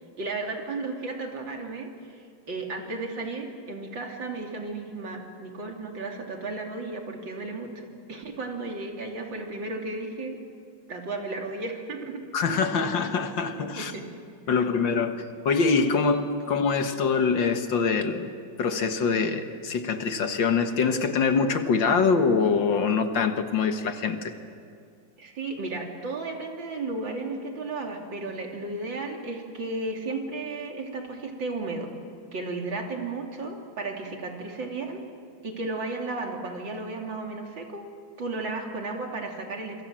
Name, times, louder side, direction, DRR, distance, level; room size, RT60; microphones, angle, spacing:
voice 1, 0.2-10.4 10.9-12.2 13.6-14.1 14.5-14.6 25.2-31.9 32.3-35.0 35.4-37.9 38.2-39.8, right 3 dB, 80° right, 1 dB, 3.7 m, -34 dB
voice 2, 12.3-13.9 14.5-15.1 15.5-18.3 18.6-24.3, left 5 dB, 80° left, 7 dB, 2.2 m, -24 dB
27.5 x 24.0 x 7.6 m, 2.3 s
omnidirectional pair, 2.0 m